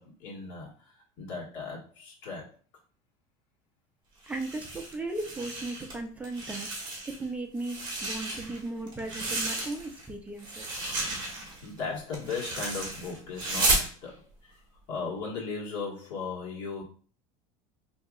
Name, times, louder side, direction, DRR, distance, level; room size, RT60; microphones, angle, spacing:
voice 1, 0.0-2.5 11.6-14.6 14.9-16.8, left 4 dB, 55° left, -3 dB, 1.6 m, -37 dB
sound 1, 4.2-5.9 6.2-7.2 7.6-10.1 10.4-13.9, right 2 dB, 25° right, 1.2 m, -33 dB
voice 2, 4.3-10.8, right 2 dB, 10° right, 3 dB, 0.4 m, -37 dB
4.8 x 2.8 x 2.4 m, 0.40 s
cardioid pair, 155°, 17 cm